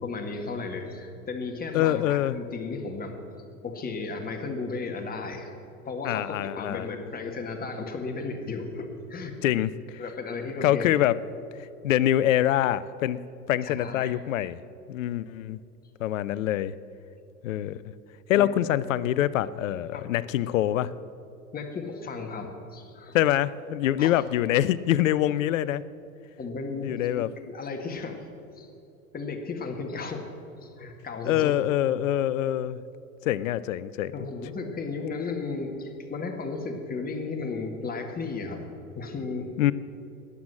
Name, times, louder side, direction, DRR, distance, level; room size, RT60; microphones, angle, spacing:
voice 1, 0.0-3.2 3.6-5.5 5.8-9.3 10.0-10.9 13.6-14.1 18.3-18.5 19.9-20.1 21.5-23.2 24.0-24.1 26.4-28.3 28.6-28.7 29.1-30.3 30.6-31.5 34.1-38.7 39.0-39.5, left 4 dB, 20° left, 4 dB, 1.8 m, -34 dB
voice 2, 1.7-2.4 6.0-6.9 9.4-10.0 10.6-11.2 11.8-13.2 13.5-14.6 14.9-15.6 16.0-16.7 17.4-17.8 18.3-20.9 23.1-25.8 26.8-27.3 31.2-32.8 33.2-34.3 39.6-39.7, left 12 dB, 60° left, 18 dB, 0.6 m, -25 dB
13.0 x 9.9 x 7.5 m, 2.7 s
figure-of-eight pair, 85°, 45 cm